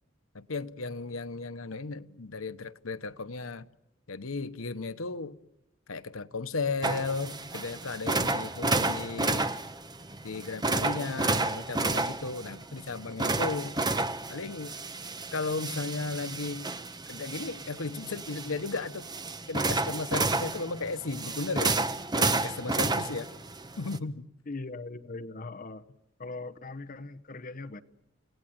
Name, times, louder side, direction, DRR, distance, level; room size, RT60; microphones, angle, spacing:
voice 1, 0.3-3.7 4.1-5.4 5.9-9.5 10.2-13.8 14.3-14.7 15.3-16.7 17.1-19.0 19.5-21.7 22.2-23.2 23.8-24.3, left 3 dB, 90° left, 1.1 m, -35 dB
sound 1, 6.8-24.0, right 3 dB, 20° right, 1.1 m, -31 dB
voice 2, 24.5-25.9 26.2-27.8, left 3 dB, 40° left, 1.0 m, -40 dB
29.0 x 18.0 x 9.4 m
head